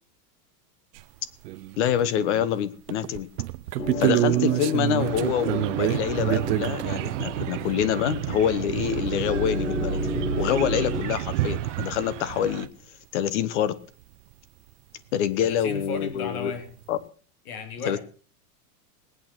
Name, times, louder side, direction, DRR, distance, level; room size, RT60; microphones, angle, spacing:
sound 1, 1.0-1.1 1.4-2.5 2.9-7.2 9.8-9.9 10.1-10.2 11.2-11.3 11.9-12.0 15.6-15.7 15.9-16.3, right 17 dB, 80° right, 0.8 m, -27 dB
voice 1, 1.8-3.3 4.0-10.0 10.4-12.7 13.1-13.8 15.1-16.5 16.9-17.0 17.8-18.0, left 9 dB, 50° left, 17 dB, 1.2 m, -26 dB
sound 2, 3.8-11.0, equal, 85° left, 3.8 m, -32 dB
sound 3, 5.0-12.7, right 16 dB, 50° right, 0.8 m, -32 dB
voice 2, 15.4-16.7 17.5-18.0, left 4 dB, 65° left, 9 dB, 3.3 m, -34 dB
19.0 x 9.1 x 6.1 m, 0.40 s
supercardioid pair, 180°, 47 cm